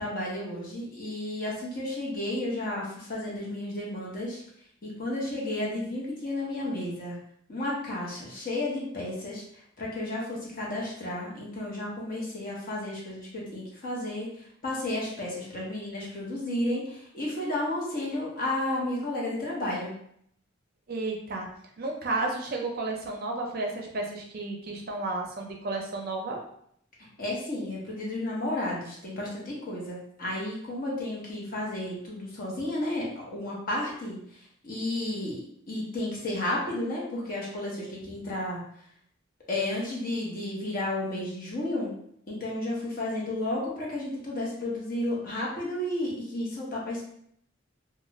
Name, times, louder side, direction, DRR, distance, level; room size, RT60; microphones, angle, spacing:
voice 1, 0.0-4.4 4.8-7.2 7.5-9.4 9.8-19.9 27.2-35.4 35.7-38.6 39.5-41.9 42.3-47.0, left 1 dB, 45° left, -4 dB, 0.9 m, -32 dB
voice 2, 20.9-21.5 21.8-26.4, right 2 dB, 50° right, 1 dB, 0.5 m, -32 dB
2.4 x 2.3 x 3.0 m, 0.67 s
head